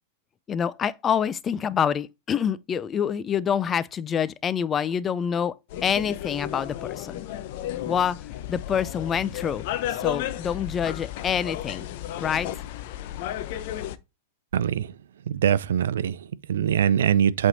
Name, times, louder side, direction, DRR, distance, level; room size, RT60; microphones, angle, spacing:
voice 1, 0.5-5.6 5.8-7.2 7.8-8.2 8.5-11.9 12.2-12.5, left 8 dB, 25° left, 0.4 m, -26 dB
sound 1, 5.7-14.0, left 12 dB, 55° left, 0.7 m, -33 dB
voice 2, 14.5-14.9 15.3-17.5, right 9 dB, 75° right, 0.5 m, -23 dB
8.1 x 3.6 x 4.0 m
hypercardioid pair, 115°, 0 cm